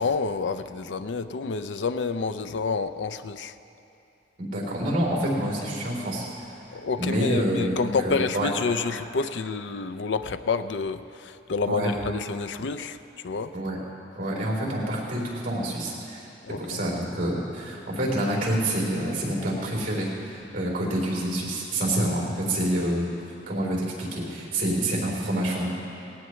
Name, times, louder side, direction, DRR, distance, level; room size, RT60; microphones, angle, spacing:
voice 1, 0.0-3.5 6.7-13.0 13.2-13.5 16.4-16.8, left 4 dB, 70° left, 11 dB, 0.5 m, -29 dB
voice 2, 4.4-6.2 7.0-8.5 11.7-11.9 13.5-13.8 14.2-16.3 16.6-23.1 23.5-25.7, right 1 dB, 50° right, -2 dB, 3.8 m, -27 dB
18.5 x 18.0 x 3.2 m, 2.9 s
head